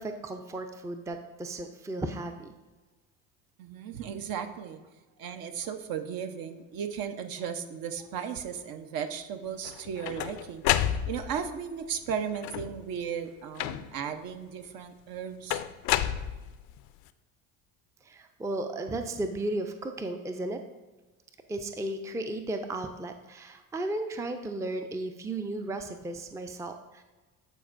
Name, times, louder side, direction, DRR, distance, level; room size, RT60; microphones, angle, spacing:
voice 1, 0.0-2.5 18.0-20.6 21.5-27.0, right 2 dB, 5° right, 6 dB, 0.5 m, -35 dB
voice 2, 3.6-4.8 5.2-15.6, right 7 dB, 55° right, 7 dB, 0.8 m, -36 dB
sound 1, 9.6-11.5 12.3-12.9 13.6-14.1 15.5-16.8, left 12 dB, 60° left, 0.5 m, -30 dB
11.5 x 4.4 x 2.5 m, 1.2 s
hypercardioid pair, 70°, 42 cm